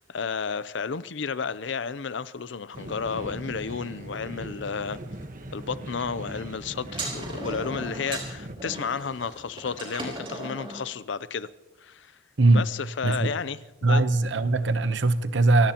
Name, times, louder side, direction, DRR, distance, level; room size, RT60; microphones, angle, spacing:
voice 1, 0.0-5.0 5.5-11.5 11.8-12.1 12.5-14.1, left 5 dB, 65° left, 0.6 m, -32 dB
sound 1, 2.7-8.6, right 1 dB, 45° right, 1.2 m, -39 dB
sound 2, 6.9-10.8, right 2 dB, 25° right, 4.3 m, -37 dB
voice 2, 13.8-15.7, right 2 dB, 65° right, 0.9 m, -21 dB
26.5 x 17.0 x 3.0 m
head